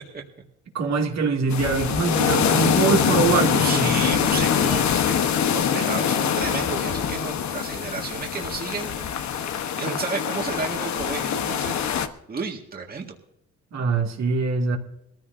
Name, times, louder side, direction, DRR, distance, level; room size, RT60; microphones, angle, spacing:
voice 1, 0.7-3.9 13.7-14.8, right 4 dB, 60° right, 2.5 m, -23 dB
sound 1, 1.5-12.1, left 8 dB, 65° left, 1.2 m, -24 dB
voice 2, 3.6-9.1 9.8-11.8 12.3-13.1, right 5 dB, 30° right, 1.9 m, -32 dB
21.5 x 14.5 x 2.7 m
cardioid pair, 90°, 30 cm